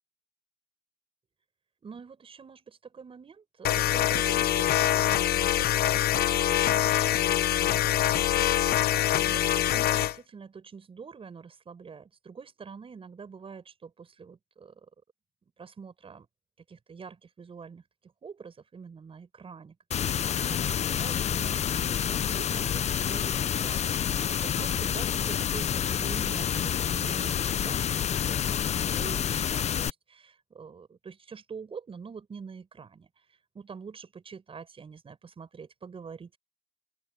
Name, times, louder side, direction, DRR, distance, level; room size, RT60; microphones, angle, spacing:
voice 1, 1.8-8.8 9.1-14.9 15.6-16.3 16.7-36.4, right 5 dB, 35° right, 7.2 m, -46 dB
sound 1, 3.6-10.2, left 12 dB, 65° left, 1.0 m, -24 dB
sound 2, 19.9-29.9, left 9 dB, 40° left, 0.7 m, -28 dB
open air
cardioid pair, 110°, 17 cm